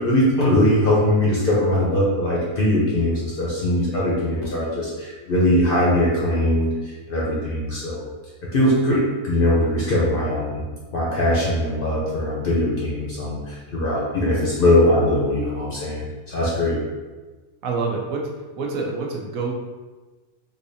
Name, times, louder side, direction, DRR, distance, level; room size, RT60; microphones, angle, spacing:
voice 1, 0.0-8.0 8.5-10.6 10.9-16.8, left 1 dB, 55° left, -5 dB, 0.6 m, -21 dB
voice 2, 17.6-18.2 18.6-19.6, right 4 dB, 75° right, -1 dB, 1.0 m, -26 dB
4.0 x 2.7 x 2.6 m, 1.3 s
omnidirectional pair, 1.5 m